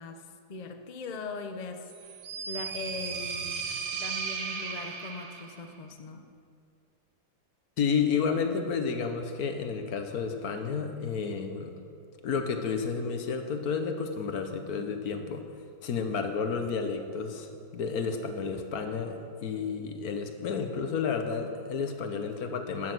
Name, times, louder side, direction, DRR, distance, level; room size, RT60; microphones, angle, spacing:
voice 1, 0.0-3.6 4.0-6.3, left 3 dB, 85° left, 6 dB, 0.3 m, -40 dB
sound 1, 1.9-5.6, right 5 dB, 75° right, 1.6 m, -36 dB
voice 2, 7.8-11.7 12.2-15.4 15.8-22.9, left 5 dB, 60° left, 6 dB, 1.4 m, -31 dB
12.0 x 9.8 x 6.1 m, 2.4 s
omnidirectional pair, 2.0 m